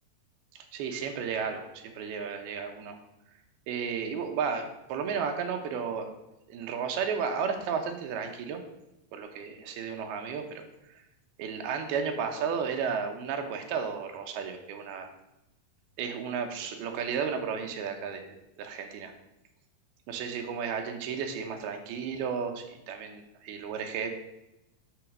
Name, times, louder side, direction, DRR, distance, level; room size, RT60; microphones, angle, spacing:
voice 1, 0.6-3.0 3.7-6.1 6.5-8.6 9.1-10.6 11.4-15.1 16.0-19.1 20.1-24.1, right 6 dB, 90° right, 4 dB, 3.0 m, -33 dB
11.5 x 4.0 x 6.1 m, 0.90 s
omnidirectional pair, 4.3 m